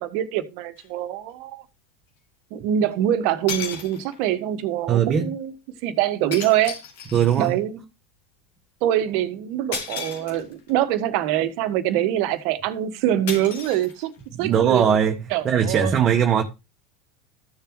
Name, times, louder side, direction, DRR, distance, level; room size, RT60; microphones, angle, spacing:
voice 1, 0.0-1.6 2.5-5.5 5.8-6.8 7.4-7.8 8.8-14.1 14.4-14.8 15.3-15.9, right 11 dB, 60° right, 1.4 m, -24 dB
sound 1, 0.8-0.9 2.9-3.0 3.5-4.3 6.3-7.5 9.7-10.7 13.3-14.4, left 6 dB, 70° left, 3.6 m, -34 dB
voice 2, 4.9-5.3 7.1-7.6 14.3-16.4, right 8 dB, 35° right, 1.4 m, -20 dB
14.5 x 7.0 x 3.0 m
hypercardioid pair, 80°, 0 cm